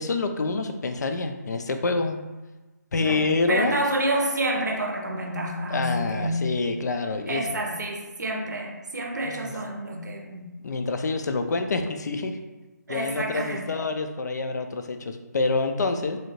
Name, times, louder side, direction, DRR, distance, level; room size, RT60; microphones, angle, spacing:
voice 1, 0.0-2.2 2.9-3.8 5.7-7.5 9.2-9.5 10.6-12.4 12.9-16.2, left 3 dB, 70° left, 6 dB, 0.4 m, -27 dB
voice 2, 3.0-6.5 7.3-10.5 12.9-13.6, right 1 dB, 75° right, 2 dB, 0.6 m, -28 dB
2.7 x 2.3 x 3.0 m, 1.2 s
figure-of-eight pair, 155°, 10 cm